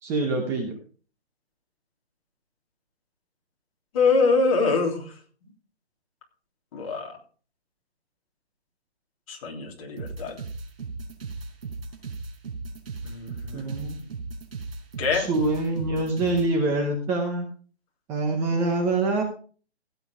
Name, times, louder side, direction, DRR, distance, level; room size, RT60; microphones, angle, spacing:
voice 1, 0.0-0.8 13.5-14.0 15.1-17.5 18.1-19.2, right 2 dB, 10° right, 2 dB, 0.8 m, -25 dB
voice 2, 3.9-5.2 6.7-7.2 9.3-10.4 13.0-14.1 15.0-15.3, left 4 dB, 30° left, -1 dB, 3.5 m, -25 dB
sound 1, 10.0-16.5, right 4 dB, 60° right, 4.7 m, -36 dB
16.5 x 8.0 x 4.9 m, 0.41 s
hypercardioid pair, 165°, 33 cm